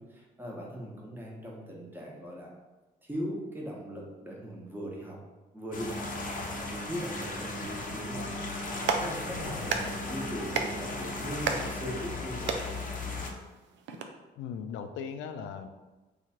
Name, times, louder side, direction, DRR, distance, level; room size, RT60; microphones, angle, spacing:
voice 1, 0.0-2.5 3.0-5.2 5.5-6.1 6.6-8.3 9.0-12.6, equal, 10° right, -3 dB, 1.1 m, -39 dB
sound 1, 5.7-13.3, left 2 dB, 40° left, 0.7 m, -36 dB
Clapping, 8.7-14.0, right 5 dB, 70° right, 0.4 m, -36 dB
voice 2, 9.3-9.9 14.4-15.7, left 7 dB, 70° left, 8 dB, 0.4 m, -39 dB
2.9 x 2.4 x 4.3 m, 1.2 s
supercardioid pair, 55°, 20 cm